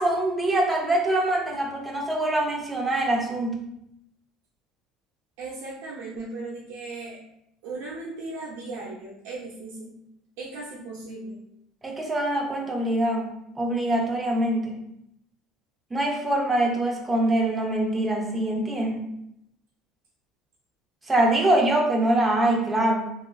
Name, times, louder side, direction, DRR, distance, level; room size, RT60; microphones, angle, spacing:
voice 1, 0.0-3.6 11.8-14.8 15.9-19.1 21.1-23.1, right 1 dB, 15° right, 0 dB, 0.5 m, -24 dB
voice 2, 5.4-7.2 7.6-9.9 10.4-11.4, right 3 dB, 80° right, -5 dB, 0.5 m, -37 dB
2.9 x 2.3 x 2.3 m, 0.79 s
cardioid pair, 135°, 0 cm